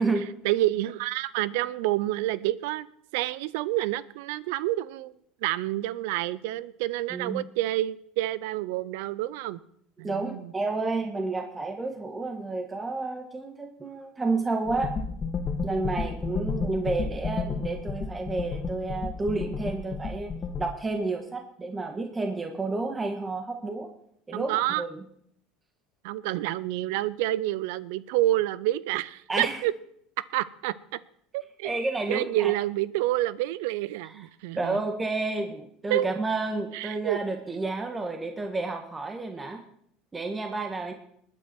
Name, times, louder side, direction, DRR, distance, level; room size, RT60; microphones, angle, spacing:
voice 1, 0.4-2.9 3.1-5.1 5.4-9.6 10.0-10.5 24.3-24.8 26.0-29.7 30.2-31.0 31.3-31.8 32.1-34.8 35.9-36.1 36.7-37.2, right 15 dB, 75° right, 20 dB, 0.6 m, -28 dB
voice 2, 7.1-7.4 10.0-14.9 15.6-23.9 24.3-24.9 29.3-29.6 31.6-32.5 34.6-39.6 40.1-40.9, right 3 dB, 20° right, 4 dB, 1.7 m, -30 dB
sound 1, 14.7-20.6, left 4 dB, 35° left, 2.2 m, -32 dB
20.5 x 9.7 x 4.5 m, 0.69 s
hypercardioid pair, 85°, 0 cm